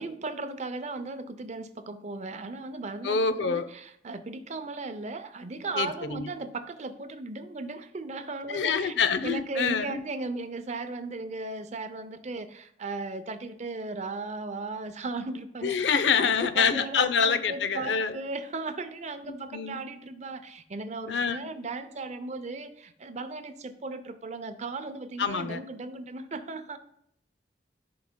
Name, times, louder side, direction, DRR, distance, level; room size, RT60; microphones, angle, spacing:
voice 1, 0.0-3.6 4.0-8.9 9.2-12.5 12.8-15.7 16.2-20.4 20.7-22.7 23.0-23.5 23.8-26.8, right 3 dB, 40° right, 10 dB, 0.5 m, -36 dB
voice 2, 3.0-3.7 5.8-6.3 8.5-10.0 15.6-18.1 19.5-19.8 21.1-21.4 25.2-25.6, left 6 dB, 80° left, 12 dB, 0.5 m, -26 dB
14.0 x 4.8 x 2.2 m, 0.73 s
head